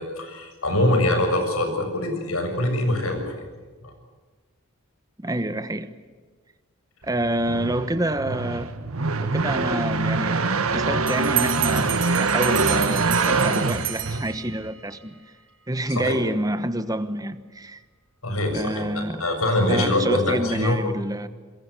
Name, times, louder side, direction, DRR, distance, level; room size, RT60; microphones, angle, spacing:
voice 1, 0.0-3.4 3.8-3.9 15.9-16.2 18.2-20.8, left 1 dB, 85° left, 6 dB, 7.2 m, -24 dB
voice 2, 5.2-5.9 7.0-8.7 9.2-15.2 15.7-17.8 18.5-19.2 19.7-21.3, right 1 dB, 15° right, 11 dB, 1.2 m, -27 dB
sound 1, 7.1-14.7, right 3 dB, 90° right, 1.7 m, -24 dB
Bell, 11.1-14.7, right 12 dB, 60° right, 4.7 m, -30 dB
27.5 x 22.5 x 8.3 m, 1.4 s
head